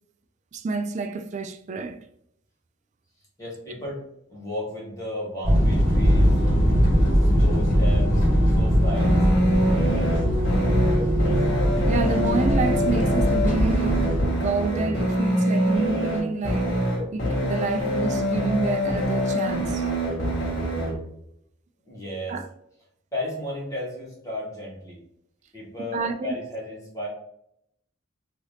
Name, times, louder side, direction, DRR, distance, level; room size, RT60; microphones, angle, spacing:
voice 1, 0.5-2.0 11.9-16.8 17.1-19.9 22.3-22.4 25.9-26.3, right 3 dB, 35° right, 0.3 m, -28 dB
voice 2, 3.4-4.0 4.3-6.4 7.2-9.3 21.8-22.4 23.1-25.0 25.5-27.1, left 1 dB, 15° left, 1.3 m, -34 dB
sound 1, 5.4-14.2, equal, 45° left, 1.4 m, -20 dB
sound 2, 8.9-21.0, equal, 85° left, 1.4 m, -25 dB
3.3 x 2.8 x 2.7 m
head